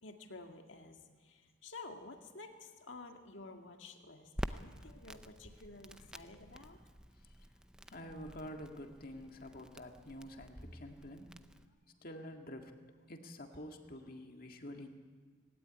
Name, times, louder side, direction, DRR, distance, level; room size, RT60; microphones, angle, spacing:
voice 1, 0.0-6.8, left 3 dB, 65° left, 4 dB, 2.0 m, -52 dB
Crackle, 4.4-11.7, equal, 5° right, 0.6 m, -48 dB
voice 2, 7.9-11.3 12.0-12.7 13.1-14.9, left 1 dB, 45° left, 4 dB, 1.9 m, -48 dB
19.0 x 17.0 x 10.0 m, 1.5 s
head